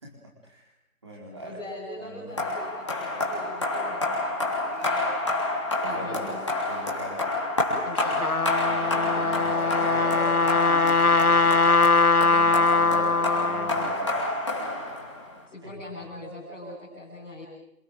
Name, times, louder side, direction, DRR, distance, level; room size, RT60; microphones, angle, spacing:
voice 1, 0.0-0.7 1.0-1.6 2.0-2.4 5.9-6.4 6.7-7.3 8.6-11.6 12.2-14.2 15.6-15.7, right 1 dB, 20° right, -1 dB, 4.5 m, -40 dB
voice 2, 1.1-5.2 5.8-6.4 7.8-8.4 15.4-17.4, left 1 dB, 5° left, -17 dB, 4.7 m, -41 dB
sound 1, 2.4-15.4, left 2 dB, 20° left, 3.5 m, -29 dB
Trumpet, 7.9-13.9, left 3 dB, 80° left, 1.8 m, -21 dB
27.5 x 23.5 x 7.7 m, 0.80 s
figure-of-eight pair, 175°, 43 cm